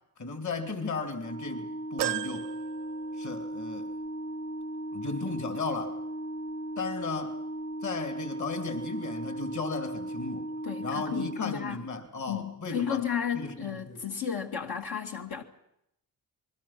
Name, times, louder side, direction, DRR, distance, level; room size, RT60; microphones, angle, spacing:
voice 1, 0.2-2.5 3.1-3.9 4.9-6.0 6.8-7.4 7.8-10.5 10.8-13.0 13.3-14.0, left 3 dB, 45° left, 3.0 m, -35 dB
Organ, 1.2-12.0, right 1 dB, 30° left, 1.6 m, -37 dB
sound 1, 2.0-3.6 4.1-4.2 5.4-5.5, right 14 dB, 85° right, 0.7 m, -35 dB
voice 2, 10.6-11.8 12.3-15.4, left 8 dB, 65° left, 2.2 m, -33 dB
27.0 x 21.5 x 6.0 m
cardioid pair, 75°, 40 cm